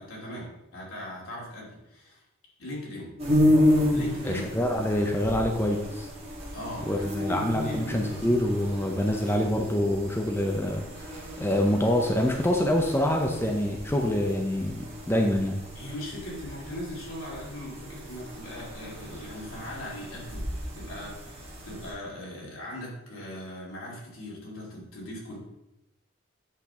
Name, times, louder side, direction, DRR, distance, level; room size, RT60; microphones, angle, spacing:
voice 1, 0.0-2.2 2.6-3.1 3.9-4.5 6.5-8.2 15.7-25.4, left 1 dB, 80° left, -4 dB, 2.7 m, -39 dB
sound 1, 3.2-21.9, left 1 dB, 30° right, 1.8 m, -31 dB
voice 2, 4.2-6.1 6.9-11.1 11.4-15.6, left 1 dB, 10° left, 1 dB, 0.6 m, -26 dB
8.0 x 5.9 x 3.6 m, 0.90 s
head